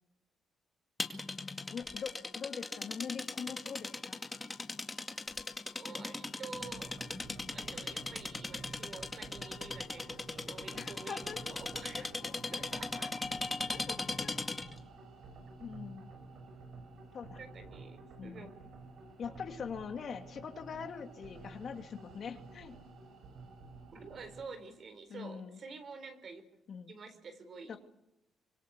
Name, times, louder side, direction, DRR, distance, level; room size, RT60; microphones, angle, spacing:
sound 1, 1.0-14.8, left 3 dB, 20° left, 2.2 m, -39 dB
voice 1, 1.7-4.2 7.3-7.5 10.7-11.4 12.2-12.3 13.7-14.4 15.6-16.1 17.1-17.4 18.2-18.5 19.2-22.8 25.1-25.6 26.7-27.0 27.7-27.8, left 6 dB, 55° left, 7 dB, 2.4 m, -43 dB
voice 2, 5.8-6.9 7.5-12.1 12.5-13.2 17.4-18.5 19.2-19.3 23.9-26.4 26.9-27.8, right 4 dB, 50° right, 9 dB, 4.1 m, -48 dB
sound 2, 6.5-24.5, right 3 dB, 80° right, 6.3 m, -52 dB
25.5 x 24.0 x 8.3 m, 0.85 s
cardioid pair, 95°, 0 cm